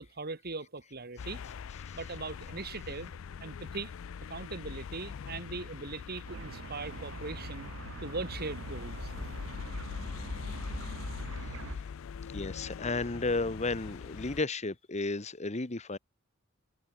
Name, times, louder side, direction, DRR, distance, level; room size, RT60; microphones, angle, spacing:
voice 1, 0.0-1.4 1.9-3.9 4.3-7.7 8.0-9.1, right 3 dB, 50° right, 2.0 m, -40 dB
sound 1, 1.2-14.4, left 6 dB, 80° left, 0.4 m, -42 dB
sound 2, 6.3-11.8, right 4 dB, 75° right, 0.7 m, -43 dB
voice 2, 12.3-16.0, left 3 dB, 35° left, 1.2 m, -33 dB
head